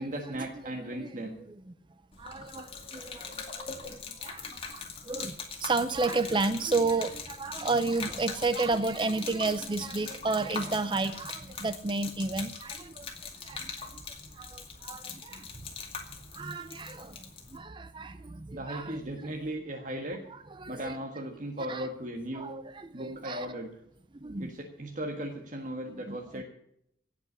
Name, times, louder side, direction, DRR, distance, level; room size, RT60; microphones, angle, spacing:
voice 1, 0.0-1.4 9.6-9.7 10.0-10.1 18.5-20.2 20.7-22.5 22.9-23.7 24.4-26.4, right 1 dB, 45° right, 2 dB, 1.6 m, -37 dB
Gurgling / Liquid, 2.1-17.6, left 5 dB, 30° left, 2.2 m, -42 dB
voice 2, 2.2-14.0 14.3-15.5 16.3-19.0 20.3-21.0 21.7-21.9 22.3-23.5 24.2-24.5 26.1-26.4, right 3 dB, 25° right, 12 dB, 0.5 m, -32 dB
17.5 x 6.0 x 9.9 m, 0.75 s
head